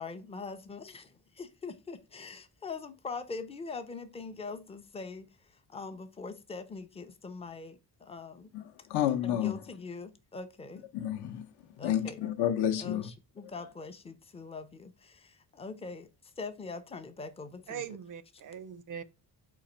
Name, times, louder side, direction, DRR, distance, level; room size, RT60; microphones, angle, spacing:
voice 1, 0.0-5.3 5.7-8.5 9.2-10.8 11.8-12.2 12.8-16.1 16.4-18.0, left 4 dB, 15° left, 0.4 m, -42 dB
voice 2, 8.5-9.5 10.9-11.5 11.8-13.1, left 11 dB, 65° left, 0.7 m, -30 dB
voice 3, 17.7-19.0, right 8 dB, 50° right, 0.4 m, -41 dB
4.0 x 2.5 x 4.2 m
cardioid pair, 125°, 42 cm